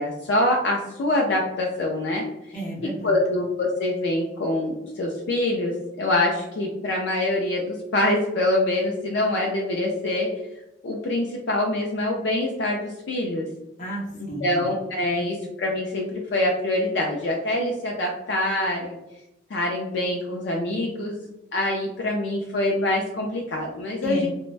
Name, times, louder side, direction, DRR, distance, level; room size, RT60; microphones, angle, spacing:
voice 1, 0.0-2.2 3.0-10.3 10.8-13.5 14.4-19.0 19.5-24.3, left 1 dB, 65° left, -1 dB, 0.4 m, -25 dB
voice 2, 2.5-3.2 13.8-14.6 15.2-15.3 24.0-24.3, right 2 dB, 40° left, -2 dB, 0.7 m, -32 dB
3.2 x 2.1 x 2.4 m, 0.92 s
head